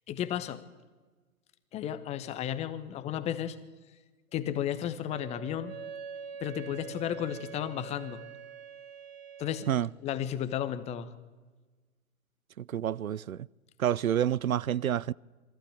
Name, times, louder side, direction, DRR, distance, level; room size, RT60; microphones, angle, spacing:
voice 1, 0.1-0.6 1.7-3.6 4.3-5.7 6.4-8.2 9.4-9.7 10.0-11.1, left 10 dB, 15° left, 0.9 m, -33 dB
Wind instrument woodwind instrument, 5.1-9.8, right 7 dB, 45° right, 2.1 m, -44 dB
voice 2, 12.6-13.5 13.8-15.1, right 10 dB, 75° right, 0.6 m, -28 dB
23.0 x 15.0 x 8.7 m
figure-of-eight pair, 120°, 41 cm